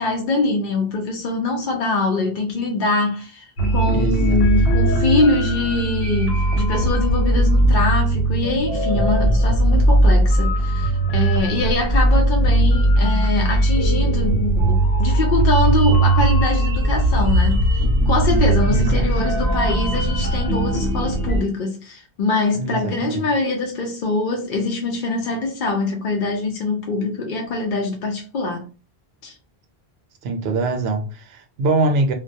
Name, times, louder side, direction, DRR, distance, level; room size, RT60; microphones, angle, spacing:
voice 1, 0.0-28.6 29.2-29.3, left 3 dB, 60° left, 0.6 m, -23 dB
sound 1, 3.6-21.4, right 1 dB, 90° left, 1.1 m, -18 dB
voice 2, 3.9-4.4 18.7-19.1 22.5-23.3 30.2-32.1, right 2 dB, 75° right, 0.8 m, -23 dB
2.2 x 2.1 x 2.6 m
omnidirectional pair, 1.1 m